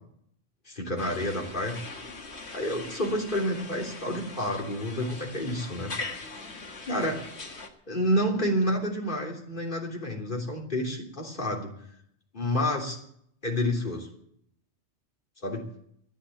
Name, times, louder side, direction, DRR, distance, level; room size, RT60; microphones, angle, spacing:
voice 1, 0.7-1.8 2.5-5.9 6.9-7.2 7.9-11.7 12.3-13.0 13.4-14.1 15.4-15.6, left 1 dB, 45° left, 0 dB, 3.5 m, -29 dB
sound 1, 1.0-7.7, left 3 dB, 70° left, 2.0 m, -41 dB
14.5 x 10.0 x 9.3 m, 0.69 s
omnidirectional pair, 1.2 m